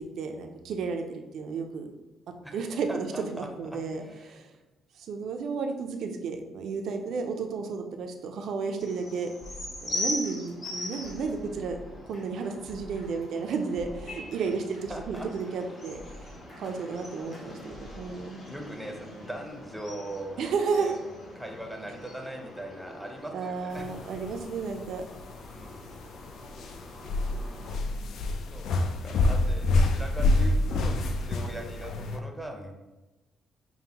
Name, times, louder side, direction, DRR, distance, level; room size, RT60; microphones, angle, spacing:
voice 1, 0.0-1.9 2.5-4.5 5.0-9.3 9.8-11.8 12.1-16.0 16.6-18.4 20.4-21.0 23.3-25.0, right 5 dB, 70° right, 4 dB, 0.4 m, -32 dB
voice 2, 2.9-4.4 14.9-15.7 18.5-21.0 21.3-24.0 25.4-25.8 28.5-32.7, right 1 dB, ahead, 2 dB, 0.6 m, -41 dB
sound 1, 8.8-27.8, left 1 dB, 45° left, 1.1 m, -41 dB
sound 2, 9.4-13.3 13.8-18.1, left 1 dB, 30° left, 1.0 m, -48 dB
sound 3, 23.7-32.2, left 2 dB, 75° left, 0.3 m, -27 dB
5.3 x 2.1 x 2.8 m, 1.1 s
cardioid pair, 90°, 0 cm